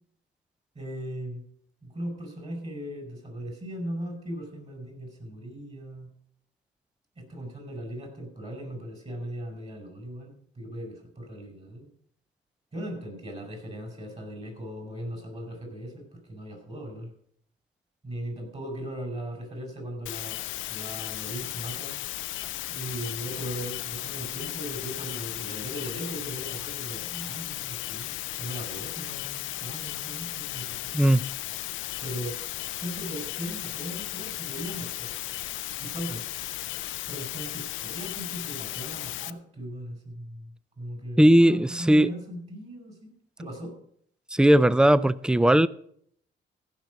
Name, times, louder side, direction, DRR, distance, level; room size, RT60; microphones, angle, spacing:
voice 1, 0.8-1.4 1.8-6.1 7.2-11.9 12.7-17.1 18.0-20.4 20.7-22.0 22.7-30.9 32.0-32.4 32.8-35.1 35.8-36.2 37.1-43.8, equal, 35° right, 5.0 m, -38 dB
sound 1, 20.1-39.3, left 15 dB, 75° left, 0.5 m, -35 dB
voice 2, 41.2-42.1 44.3-45.7, right 1 dB, 5° right, 0.4 m, -18 dB
15.5 x 5.8 x 6.3 m
cardioid pair, 90°, 20 cm